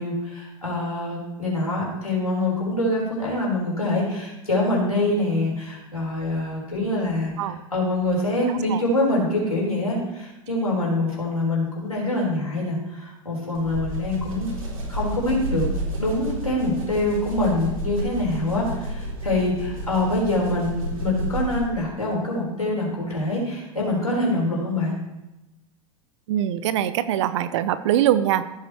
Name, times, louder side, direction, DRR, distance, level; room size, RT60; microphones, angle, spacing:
voice 1, 0.0-14.5 14.9-15.7 16.0-25.0, left 1 dB, 90° left, -4 dB, 4.2 m, -25 dB
sound 1, 13.5-21.8, equal, 70° right, 2.9 m, -31 dB
voice 2, 26.3-28.4, right 11 dB, 55° right, 13 dB, 0.7 m, -22 dB
15.0 x 8.1 x 3.0 m, 0.97 s
figure-of-eight pair, 90°, 18 cm